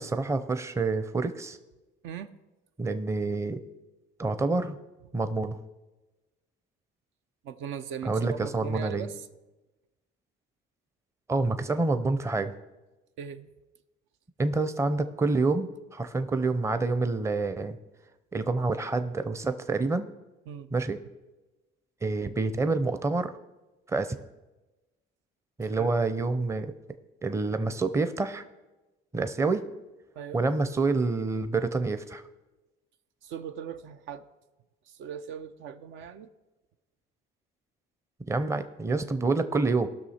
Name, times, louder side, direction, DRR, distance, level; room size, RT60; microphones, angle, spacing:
voice 1, 0.0-1.6 2.8-3.6 4.2-4.8 5.1-5.6 8.0-9.1 11.3-12.5 14.4-17.8 18.3-20.1 20.7-21.0 22.0-23.3 23.9-24.2 25.6-26.7 27.2-28.4 29.1-29.6 30.3-32.2 38.3-39.9, right 3 dB, 15° right, 11 dB, 0.6 m, -27 dB
voice 2, 7.4-9.1 13.2-13.5 20.5-20.7 25.8-25.9 30.2-30.4 33.2-34.2 35.0-36.3, right 8 dB, 70° right, 9 dB, 0.7 m, -39 dB
17.5 x 6.2 x 4.3 m, 1.1 s
cardioid pair, 105°, 21 cm